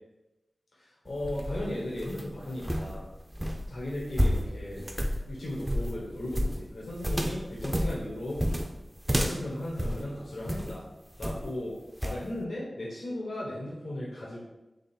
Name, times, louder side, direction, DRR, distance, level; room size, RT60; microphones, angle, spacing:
voice 1, 0.8-3.0 3.7-4.8 5.2-8.4 9.2-10.8 11.2-11.8 12.0-14.4, left 1 dB, 90° left, -6 dB, 1.0 m, -36 dB
sound 1, 1.1-10.8 11.2-11.6 12.0-12.2, equal, 15° right, 0.5 m, -31 dB
3.7 x 3.0 x 4.4 m, 1.0 s
cardioid pair, 45°, 0 cm